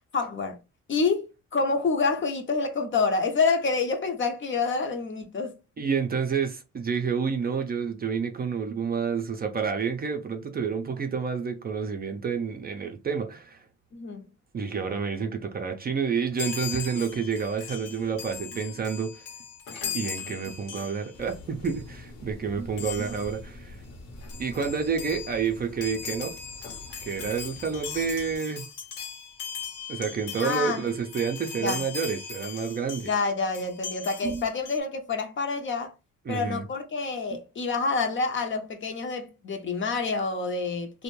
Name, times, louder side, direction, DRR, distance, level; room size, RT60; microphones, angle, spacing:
voice 1, 0.1-0.6 0.9-5.5 13.9-14.2 30.4-30.8 31.6-31.8 33.0-35.9 36.3-41.0, left 4 dB, 40° left, 0.6 m, -27 dB
voice 2, 5.8-13.6 14.5-19.3 19.9-23.8 24.4-26.4 27.0-28.6 29.9-33.1 34.2-34.4 36.3-36.6 37.3-37.4, right 6 dB, 30° right, 0.5 m, -29 dB
Chime, 16.4-21.3 21.6-21.9 22.8-23.4 23.9-24.0 24.2-33.2 33.5-34.8, left 6 dB, 85° left, 0.9 m, -39 dB
sound 1, 21.1-28.4, left 1 dB, 60° left, 0.9 m, -46 dB
2.5 x 2.1 x 3.0 m
cardioid pair, 90°, 30 cm